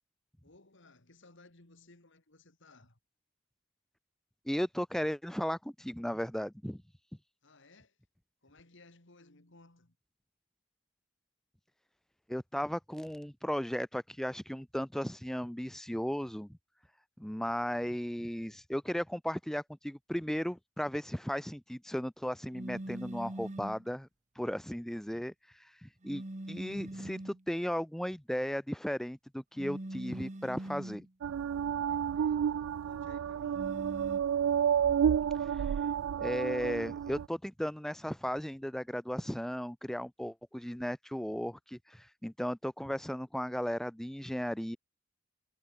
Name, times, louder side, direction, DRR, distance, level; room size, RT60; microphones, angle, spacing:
voice 1, 0.4-3.0 7.4-8.0 8.4-10.0 31.9-33.7, left 2 dB, 65° left, 2.7 m, -60 dB
voice 2, 4.5-6.8 12.3-16.6 17.2-24.1 24.4-25.3 25.8-31.1 35.5-35.9 36.2-44.8, equal, ahead, 0.4 m, -36 dB
sound 1, 22.5-23.9 26.0-27.4 29.6-31.1 33.5-34.2, right 1 dB, 35° right, 1.3 m, -42 dB
sound 2, 31.2-37.3, right 8 dB, 75° right, 0.3 m, -30 dB
head